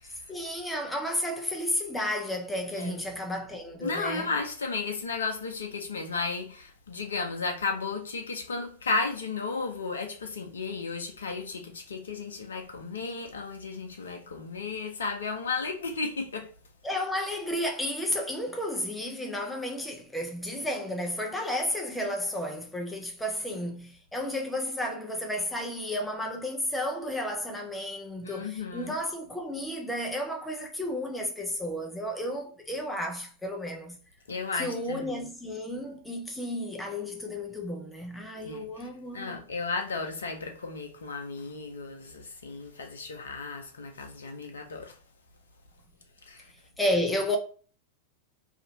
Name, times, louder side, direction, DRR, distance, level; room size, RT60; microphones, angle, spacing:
voice 1, 0.3-4.3 16.8-34.0 34.5-39.4 46.8-47.4, left 1 dB, 5° left, 0.5 m, -32 dB
voice 2, 3.8-16.5 28.2-28.9 34.3-35.3 38.4-38.9 39.1-44.9 46.3-46.4, left 4 dB, 70° left, 0.6 m, -34 dB
2.7 x 2.5 x 2.9 m
figure-of-eight pair, 90°, 0 cm